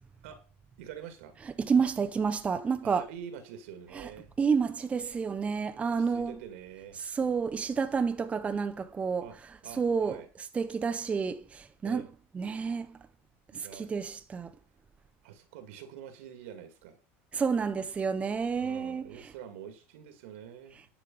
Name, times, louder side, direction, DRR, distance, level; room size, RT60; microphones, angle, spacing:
voice 1, 0.8-1.4 2.8-4.3 5.8-7.0 9.2-9.4 9.6-10.3 11.8-12.1 13.5-13.9 15.2-17.0 18.5-20.8, right 9 dB, 80° right, 2.2 m, -46 dB
voice 2, 1.6-3.0 3.9-4.1 4.4-6.4 7.0-9.3 9.8-10.2 10.5-12.0 12.3-13.0 13.5-14.5 17.3-19.1, right 5 dB, 20° right, 0.7 m, -29 dB
10.5 x 5.7 x 5.4 m
supercardioid pair, 135°, 7 cm